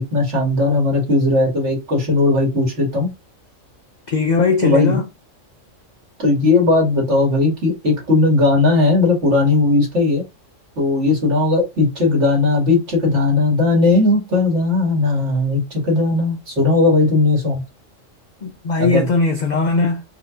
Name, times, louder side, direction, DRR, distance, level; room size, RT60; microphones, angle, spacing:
voice 1, 0.0-3.1 4.6-5.0 6.2-10.2 10.8-17.6 18.8-19.1, left 3 dB, 60° right, 2.3 m, -17 dB
voice 2, 4.1-5.1 18.4-20.0, left 4 dB, 65° left, 0.4 m, -19 dB
4.4 x 3.1 x 2.4 m
omnidirectional pair, 1.3 m